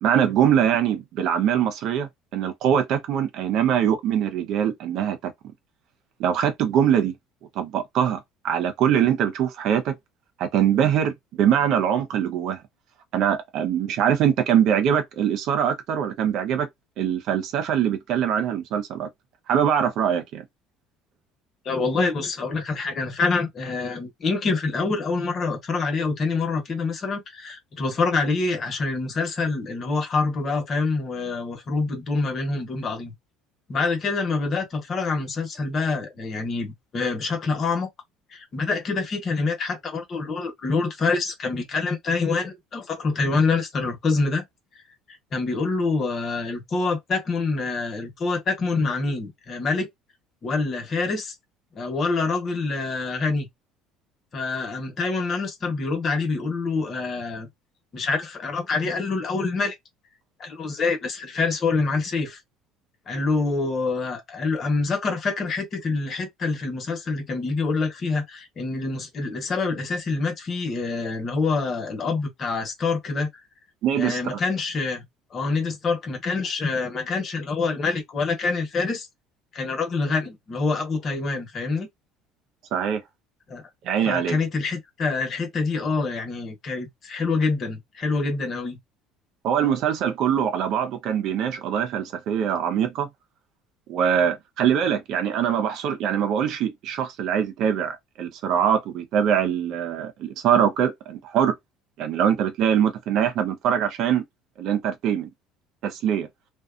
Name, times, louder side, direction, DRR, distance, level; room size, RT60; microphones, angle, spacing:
voice 1, 0.0-5.3 6.2-7.1 7.6-8.2 8.4-9.9 10.4-12.6 13.1-16.7 17.0-19.1 19.5-20.4 73.8-74.4 82.7-83.0 83.8-84.4 89.4-93.1 93.9-101.5 102.0-104.2 104.6-105.3 105.8-106.3, right 9 dB, 65° right, 0.7 m, -23 dB
voice 2, 21.6-33.1 33.7-37.9 38.3-44.4 45.3-49.9 50.4-51.3 51.7-53.5 54.3-57.5 57.9-59.7 60.4-62.4 63.1-73.3 73.9-75.0 75.3-79.1 79.5-81.9 83.5-83.6 84.0-88.8, left 4 dB, 40° left, 1.1 m, -26 dB
2.6 x 2.3 x 2.5 m
supercardioid pair, 95°, 0 cm